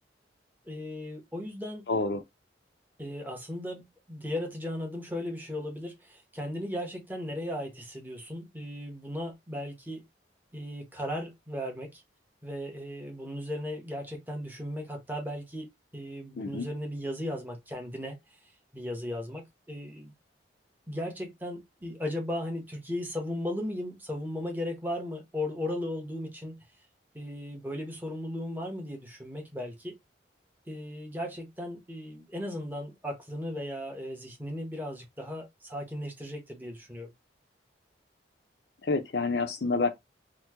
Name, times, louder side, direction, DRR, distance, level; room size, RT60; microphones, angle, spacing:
voice 1, 0.7-1.9 3.0-10.0 10.5-12.0 12.4-18.4 18.7-20.1 20.9-26.6 27.1-29.9 30.7-37.1, left 1 dB, 10° right, 0.8 m, -36 dB
voice 2, 1.9-2.2 16.4-16.7 38.8-39.9, left 3 dB, 60° left, 0.5 m, -28 dB
3.0 x 2.1 x 3.4 m
head